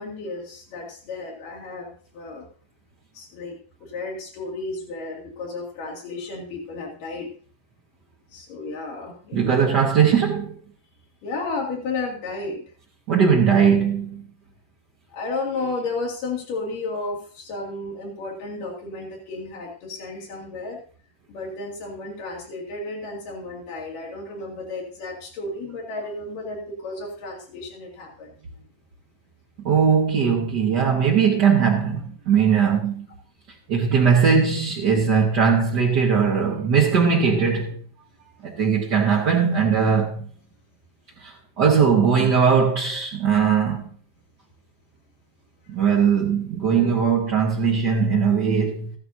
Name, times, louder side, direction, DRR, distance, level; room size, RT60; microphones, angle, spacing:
voice 1, 0.0-2.5 3.1-7.3 8.3-9.6 11.2-12.7 15.1-20.8 21.3-28.3 46.7-47.1, left 3 dB, 80° left, 3.8 m, -33 dB
voice 2, 9.3-10.5 13.1-14.3 29.6-33.1 33.7-37.8 38.4-40.3 41.2-43.9 45.7-48.9, right 6 dB, 60° right, 1.1 m, -20 dB
14.0 x 12.0 x 2.7 m
omnidirectional pair, 3.7 m